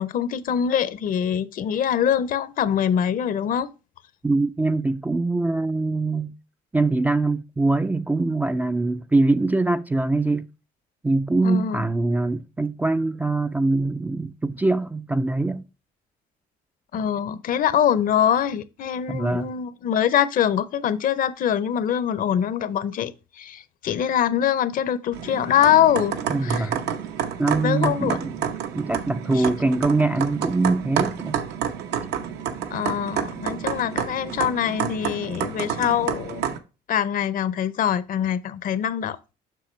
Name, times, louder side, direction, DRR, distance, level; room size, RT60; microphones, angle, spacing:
voice 1, 0.0-3.7 11.4-11.8 16.9-26.7 27.6-28.2 29.3-29.5 32.7-36.5 36.9-39.3, left 9 dB, 55° left, 0.6 m, -23 dB
voice 2, 4.2-6.3 6.7-10.5 11.0-15.6 19.1-19.5 26.3-26.8 27.4-28.5 28.7-31.4, right 2 dB, 10° right, 0.3 m, -23 dB
Ben Shewmaker - Coffee Brewing, 25.1-36.6, right 8 dB, 80° right, 0.9 m, -29 dB
7.6 x 5.8 x 3.1 m
cardioid pair, 110°, 17 cm